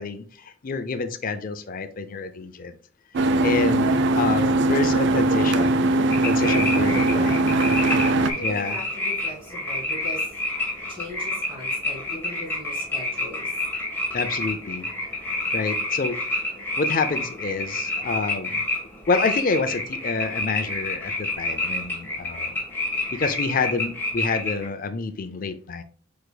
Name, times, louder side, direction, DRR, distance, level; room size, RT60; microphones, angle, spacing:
voice 1, 0.0-2.8 3.4-7.4 8.4-8.8 14.1-14.9 15.5-16.2 16.8-18.7 19.1-22.6 23.1-25.8, left 4 dB, 40° left, 10 dB, 0.4 m, -28 dB
sound 1, 3.1-8.3, right 2 dB, 55° right, 0.4 m, -20 dB
sound 2, 6.1-24.7, left 2 dB, 10° left, 1.3 m, -29 dB
voice 2, 7.0-7.4 8.2-10.3 10.9-13.5, left 1 dB, 25° right, -2 dB, 1.8 m, -38 dB
4.9 x 4.5 x 2.2 m, 0.43 s
head